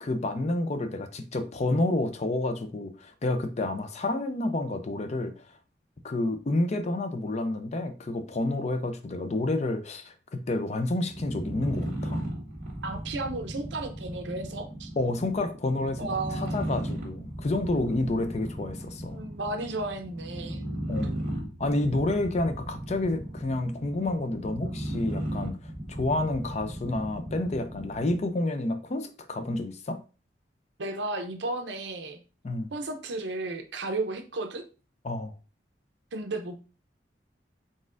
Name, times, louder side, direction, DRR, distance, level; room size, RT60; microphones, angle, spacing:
voice 1, 0.0-5.5 6.0-12.3 15.0-19.2 20.9-21.2 21.6-25.6 25.9-30.0 32.4-32.7 35.0-35.3, left 2 dB, 40° left, 0.5 m, -29 dB
sound 1, 11.0-28.3, right 1 dB, 40° right, 1.4 m, -36 dB
voice 2, 12.8-14.9 16.0-16.6 19.1-20.6 30.8-32.2 32.7-34.6 36.1-36.6, right 2 dB, 75° right, 0.7 m, -33 dB
4.1 x 3.6 x 2.5 m
head